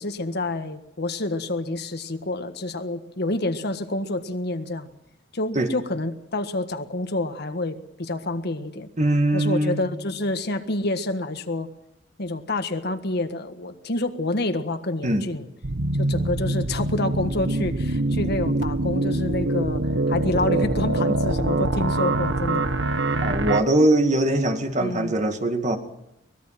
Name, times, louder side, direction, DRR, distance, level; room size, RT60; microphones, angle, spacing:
voice 1, 0.0-4.9 5.3-8.9 9.3-11.7 12.2-15.5 16.0-22.7 24.8-25.1, left 2 dB, 60° left, 1.6 m, -28 dB
voice 2, 9.0-9.9 15.0-15.3 23.2-25.8, right 1 dB, 40° right, 2.2 m, -21 dB
sound 1, 15.6-23.6, right 2 dB, 70° right, 1.2 m, -24 dB
24.0 x 20.0 x 6.0 m
head